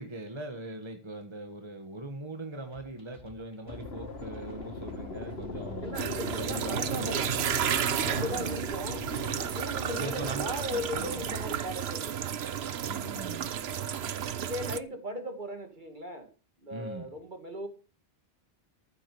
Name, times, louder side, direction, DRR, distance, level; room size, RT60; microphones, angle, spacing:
voice 1, 0.0-6.0 6.2-7.3 8.0-8.5 9.9-11.1 12.9-13.5 16.7-17.1, right 1 dB, 25° right, 5 dB, 1.6 m, -41 dB
sound 1, 2.7-11.4, right 1 dB, 65° right, 5.2 m, -54 dB
sound 2, 3.7-11.6, left 3 dB, 75° left, 2.3 m, -40 dB
voice 2, 5.8-12.3 14.3-16.3 16.6-17.7, left 1 dB, 50° right, 6 dB, 2.7 m, -38 dB
sound 3, 5.9-14.8, right 9 dB, 85° right, 1.1 m, -32 dB
14.0 x 7.8 x 7.0 m, 0.36 s
omnidirectional pair, 1.0 m